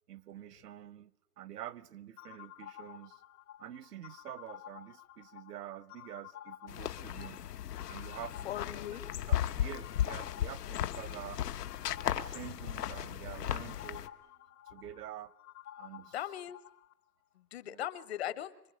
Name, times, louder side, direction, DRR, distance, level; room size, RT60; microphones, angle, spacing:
voice 1, 0.1-3.2 3.6-7.4 7.9-8.5 9.3-11.4 12.1-14.1 14.7-15.3 15.8-16.1 17.6-17.8, right 11 dB, 80° right, 1.1 m, -47 dB
sound 1, 2.2-16.9, left 11 dB, 65° left, 1.0 m, -52 dB
sound 2, 6.7-14.1, left 11 dB, 80° left, 1.5 m, -36 dB
voice 2, 8.4-9.3 16.1-16.6 17.4-18.5, left 12 dB, 40° left, 1.0 m, -39 dB
26.5 x 23.5 x 9.3 m
hypercardioid pair, 170°, 47 cm